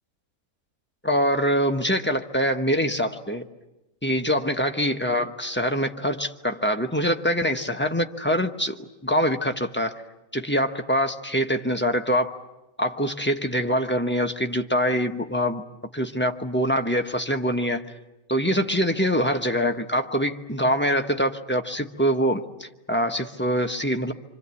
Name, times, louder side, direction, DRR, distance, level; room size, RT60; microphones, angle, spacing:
voice 1, 1.0-3.5 4.0-10.0 10.3-12.4 12.8-15.6 15.9-17.8 18.3-24.1, equal, 10° left, 4 dB, 1.0 m, -24 dB
26.5 x 26.0 x 8.4 m, 0.97 s
omnidirectional pair, 1.5 m